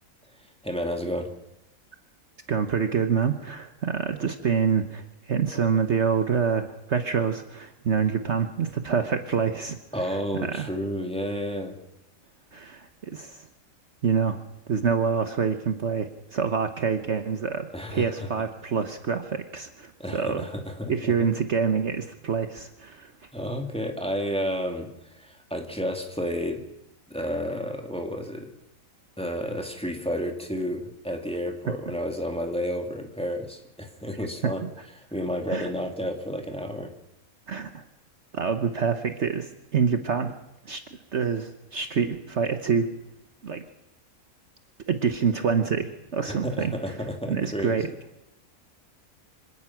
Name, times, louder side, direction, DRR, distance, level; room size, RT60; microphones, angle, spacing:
voice 1, 0.4-1.3 9.9-11.8 17.7-18.3 20.0-21.1 23.3-26.6 27.1-28.5 29.2-34.6 35.0-36.9 46.2-47.9, equal, 5° left, 3 dB, 2.5 m, -31 dB
voice 2, 2.5-9.8 10.4-10.7 12.5-13.5 14.0-14.4 14.7-20.4 20.9-23.1 35.5-35.7 37.5-37.8 38.3-40.4 40.7-40.8 41.1-42.9 43.4-43.6 44.9-46.7 47.3-47.9, right 6 dB, 55° right, 7 dB, 1.3 m, -26 dB
25.5 x 18.5 x 6.0 m, 0.89 s
omnidirectional pair, 1.5 m